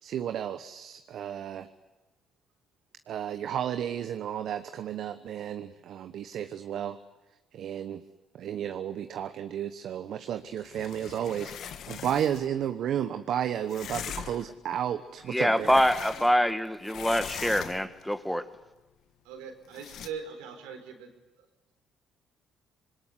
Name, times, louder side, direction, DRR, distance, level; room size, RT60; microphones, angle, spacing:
voice 1, 0.0-1.7 3.1-7.0 7.5-8.0 8.3-15.7, right 9 dB, 65° right, 1.1 m, -33 dB
sound 1, 10.6-12.5 13.7-14.5 15.2-16.5 16.8-18.0 19.7-20.1, left 9 dB, 65° left, 1.5 m, -41 dB
voice 2, 15.3-18.5, equal, 5° left, 1.7 m, -25 dB
voice 3, 19.2-21.1 21.4-21.5, right 6 dB, 90° right, 3.9 m, -41 dB
26.0 x 21.0 x 9.9 m
supercardioid pair, 65°, 0 cm